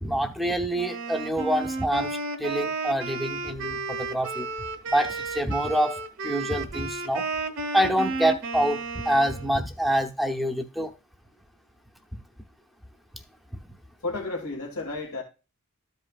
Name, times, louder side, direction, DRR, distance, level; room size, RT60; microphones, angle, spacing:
voice 1, 0.0-4.5 4.9-6.0 6.2-7.2 7.7-10.9, equal, ahead, 0.9 m, -26 dB
Wind instrument woodwind instrument, 0.7-9.5, right 3 dB, 60° right, 1.3 m, -33 dB
voice 2, 14.0-15.2, left 3 dB, 80° left, 2.5 m, -32 dB
13.5 x 5.4 x 2.5 m
head